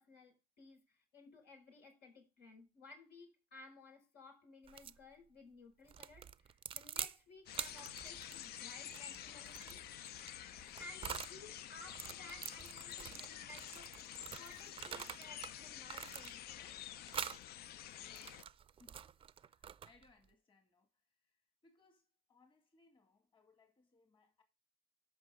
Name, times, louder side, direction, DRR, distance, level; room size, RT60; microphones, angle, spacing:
voice 1, 0.0-9.8 10.8-14.0 14.4-16.9, left 2 dB, 85° left, 5.7 m, -57 dB
sound 1, 4.7-5.0 5.9-7.2 7.5-11.4 11.8-15.5 15.9-16.6 17.1-17.4 18.0-20.1, right 8 dB, 30° right, 0.4 m, -46 dB
sound 2, 7.5-18.4, left 11 dB, 70° left, 0.5 m, -49 dB
voice 2, 19.4-24.4, left 3 dB, 30° left, 2.1 m, -70 dB
13.5 x 5.7 x 3.7 m
cardioid pair, 110°, 17 cm